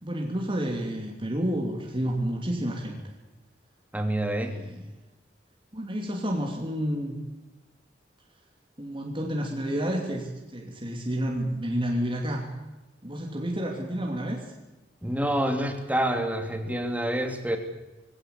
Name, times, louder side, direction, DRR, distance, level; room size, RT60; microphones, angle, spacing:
voice 1, 0.0-3.1 4.4-4.9 5.7-7.2 8.8-12.5 13.0-14.4, equal, 30° right, 0 dB, 3.0 m, -30 dB
voice 2, 3.9-4.6 15.0-17.6, right 1 dB, 10° right, 5 dB, 2.9 m, -27 dB
22.0 x 17.0 x 8.5 m, 1.1 s
head